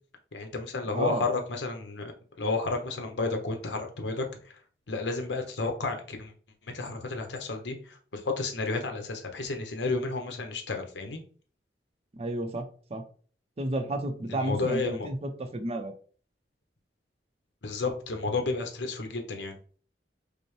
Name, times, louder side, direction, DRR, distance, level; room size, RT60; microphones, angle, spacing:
voice 1, 0.3-2.1 2.4-4.2 4.9-6.3 6.6-11.2 14.3-15.1 17.6-19.5, left 3 dB, 75° left, 4 dB, 0.9 m, -31 dB
voice 2, 0.9-1.3 12.1-13.0 13.6-15.9, right 1 dB, 35° right, 6 dB, 0.6 m, -32 dB
5.1 x 2.1 x 3.2 m, 0.43 s
head